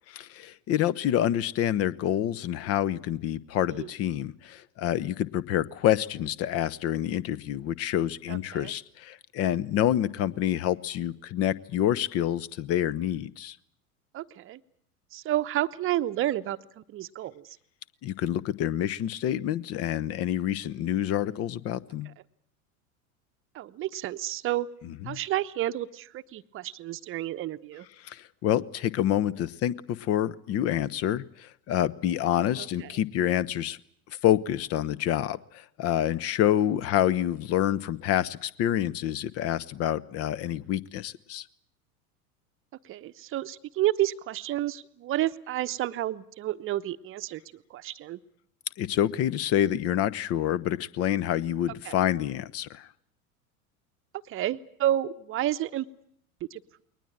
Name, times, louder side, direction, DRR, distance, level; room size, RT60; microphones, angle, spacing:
voice 1, 0.1-13.6 18.0-22.1 25.1-25.2 28.0-33.8 34.2-41.4 48.8-52.9, left 11 dB, 35° left, 20 dB, 0.9 m, -27 dB
voice 2, 8.3-8.7 14.1-14.6 15.1-17.5 23.5-24.7 25.0-27.9 32.6-32.9 42.8-48.2 51.8-51.9 54.3-55.9 56.5-56.8, right 13 dB, 30° right, 11 dB, 1.0 m, -30 dB
22.0 x 19.5 x 8.8 m, 0.71 s
figure-of-eight pair, 80°, 44 cm